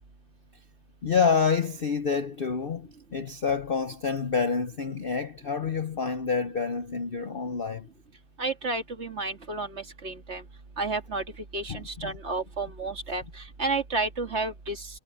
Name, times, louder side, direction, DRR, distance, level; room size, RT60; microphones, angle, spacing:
voice 1, 1.0-7.9 11.7-12.1, left 5 dB, 65° left, 0.5 m, -28 dB
voice 2, 8.4-10.4 10.8-11.2 11.5-13.2 13.6-14.9, right 3 dB, 35° right, 2.2 m, -31 dB
omnidirectional pair, 2.1 m